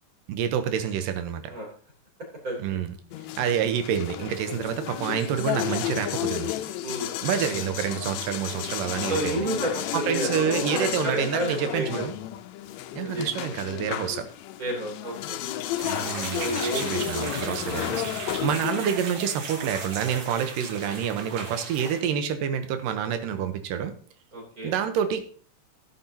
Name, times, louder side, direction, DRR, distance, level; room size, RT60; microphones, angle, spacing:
voice 1, 0.3-1.4 2.6-2.9 3.4-6.5 7.2-9.5 9.9-12.1 12.9-14.3 15.8-24.0 24.6-25.2, right 8 dB, 90° right, 8 dB, 2.5 m, -28 dB
voice 2, 2.4-2.8 6.8-7.1 9.1-12.1 13.0-13.3 14.6-15.4 16.3-17.4 18.3-18.5 24.3-24.7, right 1 dB, 25° right, 0 dB, 3.1 m, -31 dB
sound 1, 3.1-19.0, left 12 dB, 85° left, 1.6 m, -32 dB
sound 2, 15.8-22.0, right 4 dB, 60° right, 3.1 m, -37 dB
14.5 x 8.4 x 2.7 m, 0.43 s
omnidirectional pair, 3.8 m